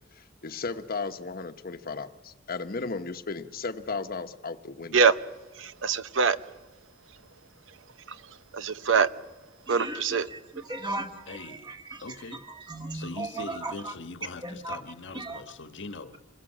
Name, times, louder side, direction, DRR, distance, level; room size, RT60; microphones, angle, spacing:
voice 1, 0.2-5.0, left 4 dB, 50° left, 1.1 m, -35 dB
voice 2, 5.5-6.4 8.1-9.1 9.7-10.3, right 5 dB, 80° right, 0.8 m, -24 dB
voice 3, 9.7-13.9 14.4-14.8 15.1-15.4, right 2 dB, 25° right, 1.7 m, -37 dB
voice 4, 11.3-11.7 12.0-12.4 12.9-16.2, left 3 dB, 70° left, 1.4 m, -41 dB
27.0 x 22.0 x 7.5 m
head